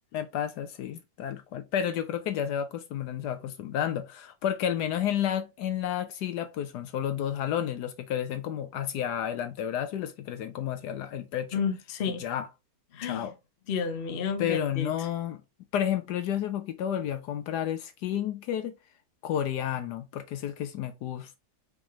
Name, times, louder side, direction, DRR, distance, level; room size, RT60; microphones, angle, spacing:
voice 1, 0.1-11.6 12.1-12.5 13.0-13.3 14.4-15.4 15.7-18.7 19.2-21.4, left 10 dB, 75° left, 1.1 m, -31 dB
voice 2, 11.5-12.2 12.9-13.3 13.7-14.9, left 6 dB, 45° left, 0.8 m, -31 dB
5.0 x 3.4 x 2.9 m
omnidirectional pair, 1.9 m